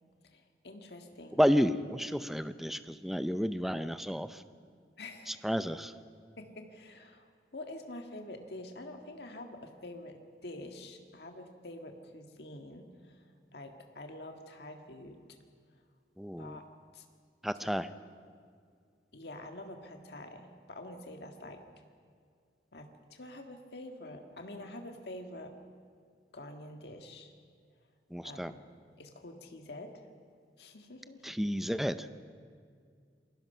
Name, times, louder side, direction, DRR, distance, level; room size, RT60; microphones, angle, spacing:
voice 1, 0.2-1.4 5.0-5.4 6.4-13.2 13.5-15.2 16.4-16.6 16.9-17.1 19.1-21.6 22.7-25.5 26.3-27.3 28.2-28.6 29.0-30.0 30.6-31.2, left 1 dB, 65° left, 4 dB, 1.8 m, -47 dB
voice 2, 1.4-4.4 5.3-5.9 16.2-16.6 17.4-17.9 28.1-28.5 31.2-32.1, equal, ahead, 11 dB, 0.6 m, -31 dB
29.0 x 21.0 x 5.7 m, 2.2 s
head